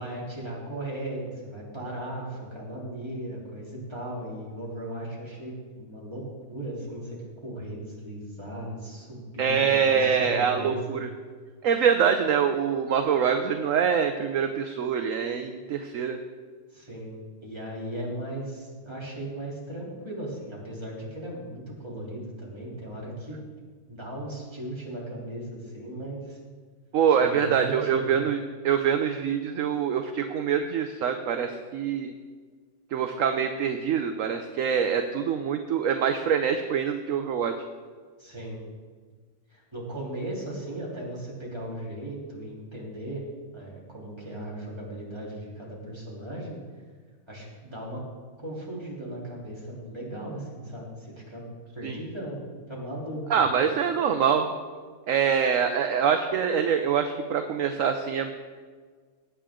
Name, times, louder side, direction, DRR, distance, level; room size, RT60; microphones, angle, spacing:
voice 1, 0.0-6.2 6.5-7.2 7.4-10.8 16.7-17.2 17.4-23.4 23.9-26.4 27.1-28.1 38.2-38.6 39.5-43.2 43.5-46.6 47.3-48.0 48.4-51.5 51.7-53.5, right 1 dB, 15° right, -5 dB, 3.4 m, -37 dB
voice 2, 9.4-11.1 11.6-16.2 26.9-28.4 28.6-32.1 32.9-37.5 51.8-52.0 53.3-54.5 55.1-58.3, right 7 dB, 65° right, 7 dB, 1.0 m, -25 dB
20.0 x 8.7 x 3.7 m, 1.5 s
omnidirectional pair, 1.7 m